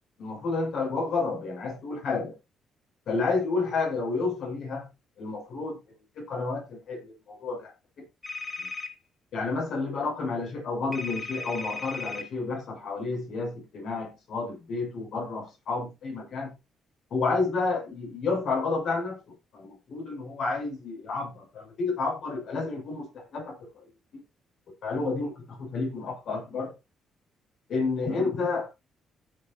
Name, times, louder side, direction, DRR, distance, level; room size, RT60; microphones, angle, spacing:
voice 1, 0.2-2.3 3.1-4.9 5.2-5.8 6.1-7.7 8.6-8.7 9.3-16.6 17.1-19.2 19.5-23.6 24.8-26.7 27.7-28.7, left 3 dB, 70° left, 7.0 m, -30 dB
sound 1, 8.2-8.9 10.9-12.3, left 4 dB, 30° left, 3.4 m, -36 dB
16.0 x 6.7 x 2.9 m
cardioid pair, 90°, 0 cm